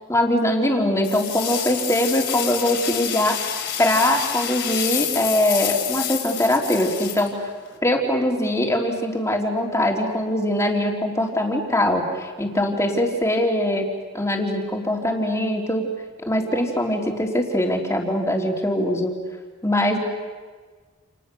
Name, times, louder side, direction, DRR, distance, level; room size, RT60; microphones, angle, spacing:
voice 1, 0.1-3.5 3.8-7.5 7.8-15.9 16.3-19.1 19.6-20.0, left 1 dB, 15° left, 0 dB, 3.4 m, -22 dB
sound 1, 1.0-7.8, left 10 dB, 60° left, 4.7 m, -28 dB
29.5 x 28.5 x 6.9 m, 1.4 s
head